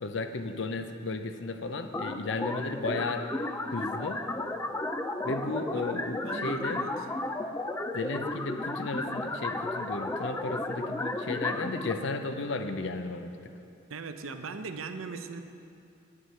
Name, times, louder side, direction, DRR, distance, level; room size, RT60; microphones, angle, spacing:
voice 1, 0.0-3.3 3.7-4.2 5.2-6.8 7.9-13.4, left 3 dB, 60° left, 8 dB, 0.6 m, -34 dB
sound 1, 1.9-11.9, left 2 dB, 15° left, 0.4 m, -33 dB
voice 2, 5.7-6.9 13.9-15.4, right 4 dB, 85° right, 8 dB, 0.6 m, -40 dB
9.8 x 9.1 x 5.5 m, 2.6 s
head